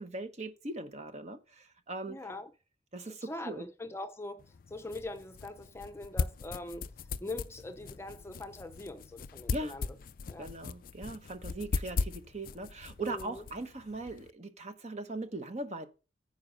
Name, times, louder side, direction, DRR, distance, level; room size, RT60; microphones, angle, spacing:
voice 1, 0.0-2.2 2.9-3.7 9.5-9.7 10.4-15.9, right 2 dB, 40° right, 1.1 m, -40 dB
voice 2, 2.1-2.5 3.1-6.9 7.2-9.9 10.3-10.5 13.0-13.4, left 2 dB, 15° left, 0.7 m, -42 dB
sound 1, 4.4-14.3, left 4 dB, 50° left, 0.4 m, -39 dB
9.6 x 5.3 x 5.0 m
head